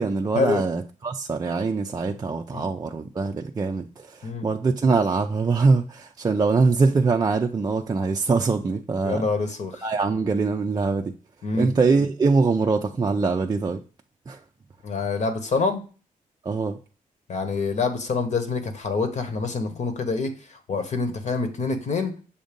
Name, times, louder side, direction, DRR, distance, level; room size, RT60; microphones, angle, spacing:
voice 1, 0.0-9.3 9.8-11.1 11.5-13.8 14.3-14.4 16.4-16.8, right 4 dB, 25° right, 0.4 m, -23 dB
voice 2, 9.0-9.8 11.4-11.7 14.8-15.8 17.3-22.1, left 4 dB, 55° left, 1.1 m, -26 dB
7.0 x 2.6 x 5.1 m
wide cardioid pair, 150°, 15 cm